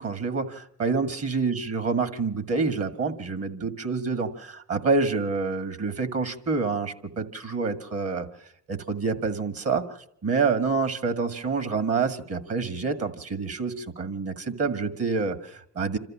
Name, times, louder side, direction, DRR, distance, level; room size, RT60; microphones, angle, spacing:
voice 1, 0.0-8.3 8.7-16.0, right 4 dB, 50° right, 12 dB, 2.0 m, -27 dB
27.0 x 13.5 x 7.3 m, 0.76 s
cardioid pair, 90°, 30 cm